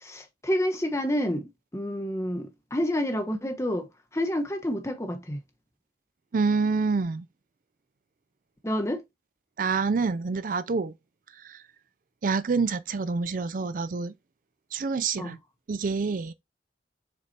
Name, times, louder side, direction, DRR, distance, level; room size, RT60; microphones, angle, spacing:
voice 1, 0.0-3.9 4.1-5.4 8.6-9.0 15.2-15.3, equal, 15° left, 1.1 m, -29 dB
voice 2, 6.3-7.3 9.6-10.9 11.3-11.6 12.2-14.1 14.7-15.4 15.7-16.3, right 4 dB, 50° right, 0.4 m, -27 dB
7.5 x 5.8 x 2.8 m
head